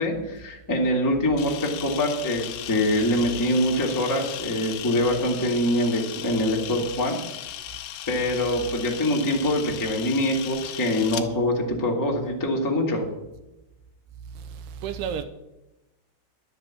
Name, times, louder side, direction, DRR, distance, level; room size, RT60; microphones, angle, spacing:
voice 1, 0.0-7.2 8.1-13.0, left 1 dB, 25° left, 0.4 m, -24 dB
Camera, 1.4-11.3, left 11 dB, 80° left, 1.8 m, -37 dB
voice 2, 14.4-15.2, right 8 dB, 80° right, 2.5 m, -32 dB
11.5 x 7.3 x 8.5 m
omnidirectional pair, 4.9 m